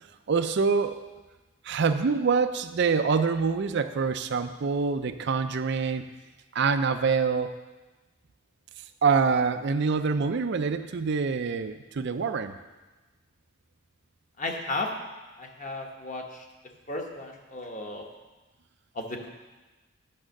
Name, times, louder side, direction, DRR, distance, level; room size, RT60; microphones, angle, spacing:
voice 1, 0.3-1.0 1.6-6.1 6.5-7.5 9.0-12.5, right 5 dB, 55° right, 9 dB, 0.4 m, -25 dB
voice 2, 14.4-14.9 15.4-16.5 16.9-18.1 18.9-19.3, left 2 dB, 35° left, 2 dB, 1.1 m, -34 dB
8.7 x 6.3 x 6.3 m, 1.2 s
head